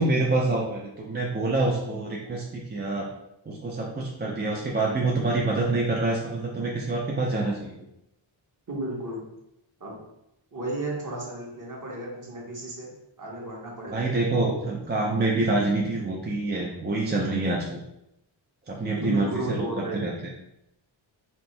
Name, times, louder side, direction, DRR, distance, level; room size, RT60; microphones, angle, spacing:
voice 1, 0.0-3.1 3.5-7.7 13.9-17.8 18.7-20.3, right 2 dB, 20° right, -2 dB, 0.4 m, -26 dB
voice 2, 8.7-9.2 9.8-10.0 10.5-12.9 13.2-14.2 19.0-20.2, right 1 dB, 40° right, -3 dB, 1.2 m, -33 dB
4.3 x 2.7 x 3.3 m, 0.84 s
wide cardioid pair, 135°, 48 cm